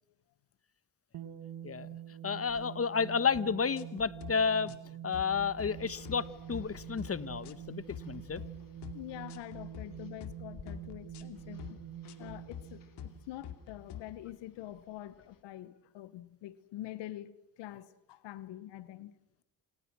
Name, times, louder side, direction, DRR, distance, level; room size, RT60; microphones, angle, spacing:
sound 1, 1.1-14.0, right 11 dB, 75° right, 2.1 m, -47 dB
voice 1, 2.2-4.7 5.0-8.4, left 6 dB, 35° left, 1.4 m, -31 dB
sound 2, 3.3-3.5 3.7-4.3 4.7-4.9 5.1-5.7 6.1-6.2 6.5-7.1 7.4-7.6 7.9-8.5 8.8-9.0 9.3-9.9 10.2-10.4 10.7-11.2 11.6-11.8 12.1-12.6 13.0-13.2 13.4-14.0, left 10 dB, 75° left, 2.6 m, -46 dB
sound 3, 5.6-15.4, left 5 dB, 50° left, 3.6 m, -58 dB
voice 2, 8.9-11.9 12.2-19.2, left 14 dB, 90° left, 1.3 m, -46 dB
28.5 x 28.0 x 6.3 m
cardioid pair, 75°, 41 cm